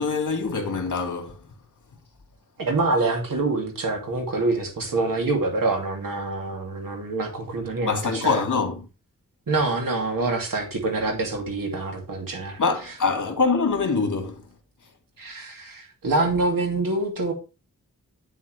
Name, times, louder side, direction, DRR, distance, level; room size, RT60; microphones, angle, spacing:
voice 1, 0.0-1.4 7.8-8.9 12.6-14.5, left 4 dB, 65° left, 2.2 m, -24 dB
voice 2, 2.6-8.4 9.5-12.6 15.2-17.3, right 3 dB, 85° right, 2.7 m, -26 dB
9.0 x 7.3 x 3.3 m
wide cardioid pair, 100°, 33 cm